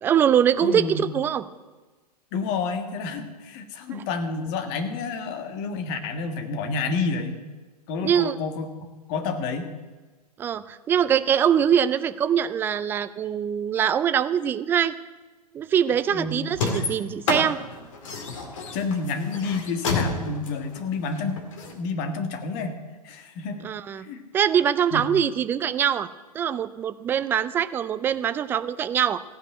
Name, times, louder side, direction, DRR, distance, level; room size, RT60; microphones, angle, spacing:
voice 1, 0.0-1.4 3.9-4.0 8.0-8.4 10.4-14.9 15.5-17.6 23.6-24.0 24.3-26.1 26.3-29.2, right 8 dB, 10° right, 13 dB, 0.3 m, -23 dB
voice 2, 0.6-1.1 2.3-7.4 7.9-8.7 9.1-9.7 16.1-16.4 18.7-21.4 21.6-22.8 23.0-23.6 24.0-24.2 24.9-25.0, left 4 dB, 35° left, 7 dB, 1.6 m, -29 dB
sound 1, 16.5-21.7, left 3 dB, 50° left, 2.2 m, -29 dB
15.5 x 5.4 x 8.7 m, 1.3 s
figure-of-eight pair, 115°, 21 cm